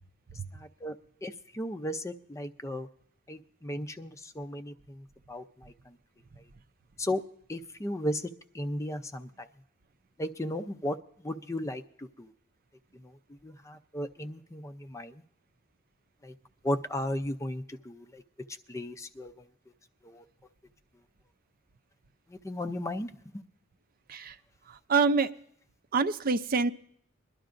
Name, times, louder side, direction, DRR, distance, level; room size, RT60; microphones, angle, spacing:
voice 1, 0.5-2.9 3.3-6.0 7.0-7.2 7.5-8.2 8.5-9.5 10.2-11.0 11.2-12.3 12.9-13.2 13.4-15.1 16.2-16.3 16.6-18.2 18.7-19.4 20.0-20.2 22.3-23.1, left 1 dB, 15° left, 9 dB, 0.5 m, -35 dB
voice 2, 24.7-25.3 25.9-26.7, right 4 dB, 45° right, 11 dB, 0.5 m, -26 dB
22.5 x 11.5 x 2.5 m, 0.67 s
head